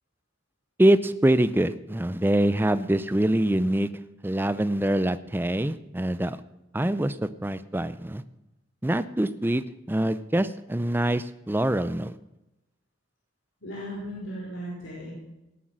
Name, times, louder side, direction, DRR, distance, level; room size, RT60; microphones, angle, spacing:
voice 1, 0.8-3.9 4.2-6.4 6.7-7.2 7.4-8.2 8.8-9.6 9.9-12.1, right 1 dB, 10° right, 14 dB, 0.4 m, -24 dB
voice 2, 13.6-15.1, equal, 70° left, -6 dB, 4.8 m, -36 dB
19.0 x 8.2 x 6.3 m, 0.96 s
head